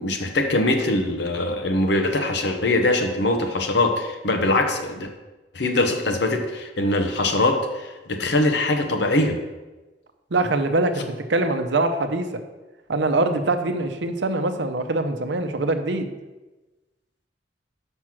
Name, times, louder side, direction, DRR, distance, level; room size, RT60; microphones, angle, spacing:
voice 1, 0.0-5.1 5.5-9.4, left 2 dB, 65° left, 5 dB, 0.9 m, -22 dB
voice 2, 10.3-12.4 12.9-16.1, right 2 dB, 70° right, 7 dB, 0.7 m, -23 dB
6.1 x 5.4 x 6.0 m, 1.1 s
head